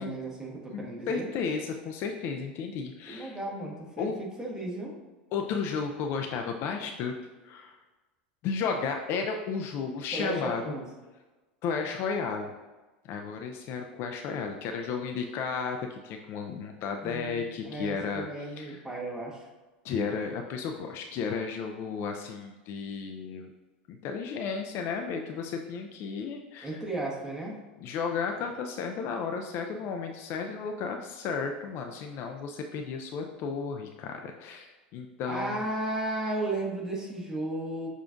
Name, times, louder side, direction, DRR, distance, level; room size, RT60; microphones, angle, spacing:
voice 1, 0.0-1.3 3.1-4.9 10.1-10.8 17.0-19.5 26.6-27.6 35.2-37.9, right 1 dB, 10° right, -4 dB, 1.3 m, -34 dB
voice 2, 0.7-3.4 4.0-4.2 5.3-7.1 7.4-7.8 8.4-10.8 11.6-12.5 13.0-18.3 18.6-18.8 19.8-23.5 23.9-26.8 27.8-35.6, left 5 dB, 50° left, 3 dB, 0.4 m, -33 dB
6.6 x 2.4 x 2.5 m, 1.2 s
hypercardioid pair, 90°, 5 cm